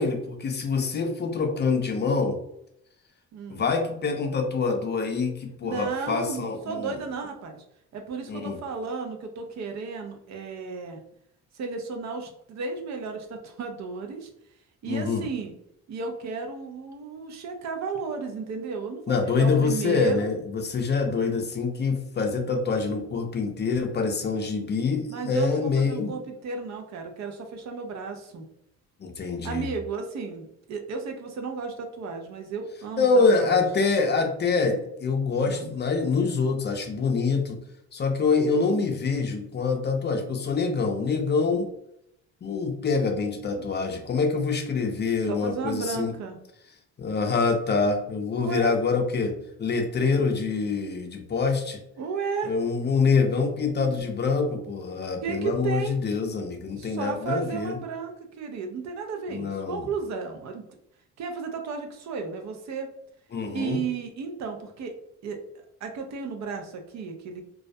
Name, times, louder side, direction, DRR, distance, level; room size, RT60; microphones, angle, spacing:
voice 1, 0.0-2.4 3.5-7.0 8.3-8.6 14.9-15.3 19.1-26.1 29.0-29.7 33.0-37.6 37.9-41.7 42.4-46.1 47.0-51.8 52.4-57.8 59.3-59.9 63.3-63.8, left 4 dB, 35° left, 4 dB, 0.5 m, -25 dB
voice 2, 3.3-3.6 5.6-7.6 7.9-11.0 11.5-14.3 14.8-15.5 15.9-20.3 25.1-28.4 29.4-33.1 33.3-33.6 35.5-35.7 45.3-46.4 48.4-48.7 52.0-52.5 55.2-56.0 56.8-60.6 61.2-62.9 63.5-64.9 65.2-67.4, right 5 dB, 65° right, 4 dB, 0.5 m, -33 dB
2.3 x 2.0 x 2.6 m, 0.76 s
cardioid pair, 90°, 30 cm